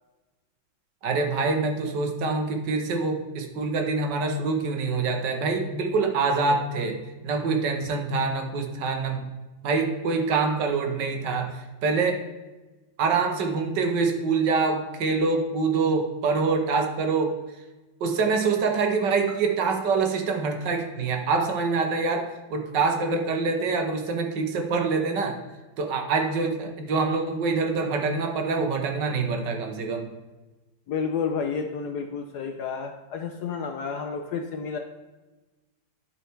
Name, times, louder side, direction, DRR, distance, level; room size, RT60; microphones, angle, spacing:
voice 1, 1.0-9.2 9.6-12.2 13.0-17.4 18.0-25.4 25.8-30.1, right 4 dB, 65° right, 4 dB, 1.5 m, -25 dB
voice 2, 30.9-34.8, left 6 dB, 70° left, 5 dB, 1.0 m, -30 dB
11.5 x 4.4 x 4.4 m, 1.2 s
omnidirectional pair, 2.2 m